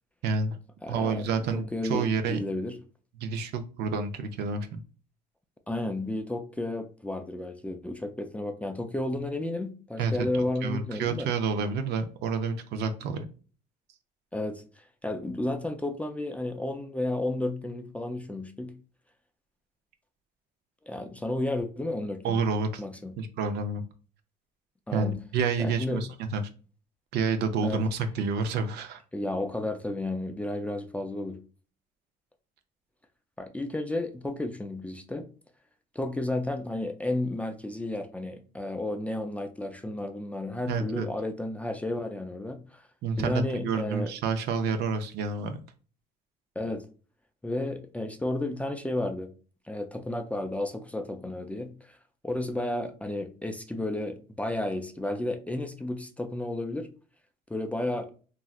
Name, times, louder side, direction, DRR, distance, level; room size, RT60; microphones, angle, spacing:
voice 1, 0.2-0.6 0.9-2.4 3.2-4.8 10.0-13.3 22.2-22.8 23.2-23.8 24.9-26.4 27.1-29.0 40.7-41.1 43.0-45.5, right 4 dB, 75° right, 0.5 m, -29 dB
voice 2, 0.8-1.3 1.5-2.8 5.7-11.3 14.3-18.7 20.8-22.4 22.8-23.1 24.9-25.2 25.6-26.0 27.6-27.8 29.1-31.4 33.4-35.3 36.0-42.8 43.2-44.1 46.6-46.9 47.4-49.3 49.7-52.0 52.2-56.9 57.5-58.1, left 1 dB, 10° left, 0.4 m, -32 dB
3.1 x 2.5 x 2.3 m
cardioid pair, 110°, 17 cm